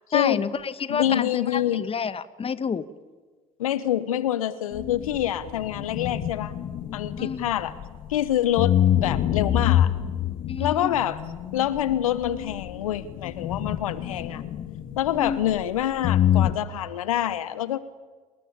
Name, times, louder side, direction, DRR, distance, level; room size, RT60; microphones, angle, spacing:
voice 1, 0.1-2.8 7.2-7.6 10.5-10.9 15.1-15.4, left 6 dB, 35° left, 15 dB, 1.5 m, -29 dB
voice 2, 0.9-1.9 3.6-6.5 6.9-7.7 8.1-9.9 10.6-11.2 11.5-14.4 15.0-17.8, left 12 dB, 80° left, 16 dB, 1.0 m, -26 dB
sound 1, 4.7-8.2 8.6-15.8 16.0-16.5, left 11 dB, 55° left, 1.6 m, -26 dB
28.5 x 20.0 x 8.7 m, 1.4 s
hypercardioid pair, 55°, 17 cm